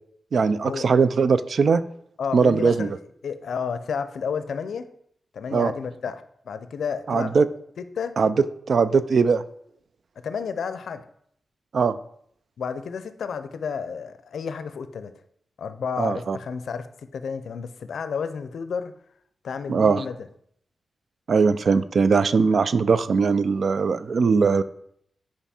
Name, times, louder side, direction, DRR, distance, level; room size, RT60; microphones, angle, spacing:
voice 1, 0.3-1.8 2.3-3.0 5.5-5.7 7.1-7.5 8.2-8.3 8.7-9.4 11.7-12.0 16.0-16.4 19.7-20.0 21.3-24.6, right 5 dB, 65° right, 0.3 m, -20 dB
voice 2, 2.2-2.9 3.2-4.9 5.3-7.4 8.0-8.2 10.2-11.0 12.6-15.1 15.6-16.9 17.1-18.9 19.4-20.3, left 6 dB, 85° left, 0.5 m, -31 dB
5.8 x 5.0 x 4.2 m
wide cardioid pair, 115°, 0 cm